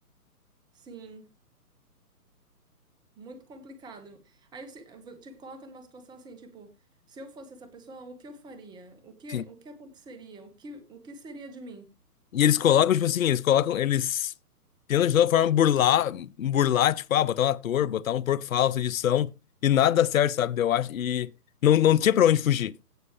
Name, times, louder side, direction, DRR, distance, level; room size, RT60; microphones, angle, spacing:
voice 1, 0.7-1.3 3.2-6.7 7.1-11.9, right 2 dB, 10° right, 1.3 m, -46 dB
voice 2, 12.3-14.3 14.9-19.3 19.6-21.3 21.6-22.7, left 10 dB, 60° left, 0.7 m, -23 dB
17.0 x 6.2 x 3.2 m
figure-of-eight pair, 140°, 47 cm